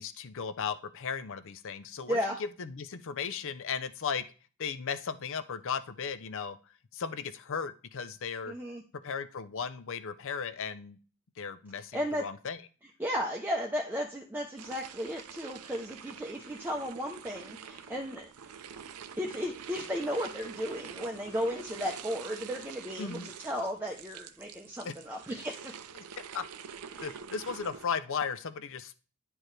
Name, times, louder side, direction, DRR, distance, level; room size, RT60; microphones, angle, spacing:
voice 1, 0.0-4.2 4.6-6.6 6.9-8.6 8.9-11.0 11.4-12.6 23.0-23.3 24.8-24.9 26.3-26.5 27.0-29.0, left 6 dB, 60° left, 13 dB, 0.6 m, -36 dB
voice 2, 2.1-2.4 8.5-8.8 11.9-12.2 13.0-18.5 19.2-25.7 26.9-27.1, equal, 10° right, -1 dB, 0.7 m, -35 dB
sound 1, 14.6-27.9, right 7 dB, 90° right, 0.6 m, -46 dB
10.5 x 4.7 x 3.2 m, 0.37 s
head